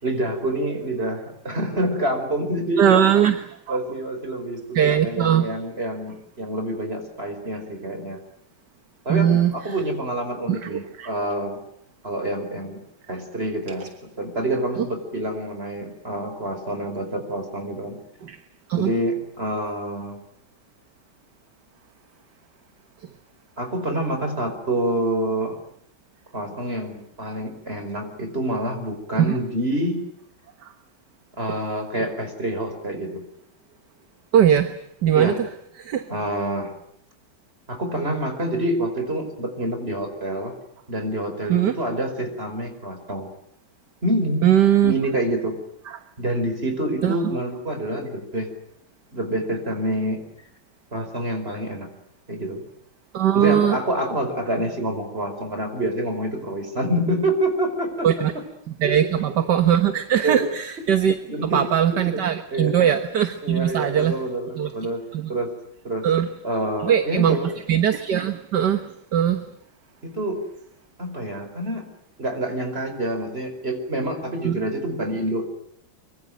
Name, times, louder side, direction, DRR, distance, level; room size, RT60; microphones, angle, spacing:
voice 1, 0.0-3.1 3.7-8.2 9.1-11.6 12.0-12.8 13.1-13.9 14.2-18.0 18.7-20.2 23.6-25.6 26.3-30.1 31.4-33.3 35.2-35.4 36.1-36.7 37.7-40.6 40.9-43.3 44.0-44.5 44.8-45.6 46.2-48.5 49.1-50.2 50.9-51.9 52.3-52.6 53.4-58.1 58.9-59.0 60.2-60.4 61.3-62.2 62.5-62.7 63.4-65.0 65.3-65.5 65.8-66.0 66.4-67.5 70.0-70.4 71.0-71.9 72.2-75.4, right 1 dB, 30° right, 6 dB, 5.3 m, -27 dB
voice 2, 2.8-3.8 4.8-5.5 9.1-9.5 10.5-11.1 13.8-13.9 18.2-18.4 18.7-18.9 29.2-29.3 30.6-30.7 34.3-35.3 35.8-36.1 41.5-41.8 44.4-44.9 45.9-46.0 47.0-47.2 53.1-53.8 58.0-58.3 58.7-61.2 61.4-64.2 64.6-64.7 65.1-65.3 66.0-66.3 66.8-68.9 69.1-69.5 74.4-74.6, right 9 dB, 60° right, 10 dB, 1.8 m, -20 dB
24.5 x 24.0 x 9.2 m, 0.73 s
omnidirectional pair, 2.2 m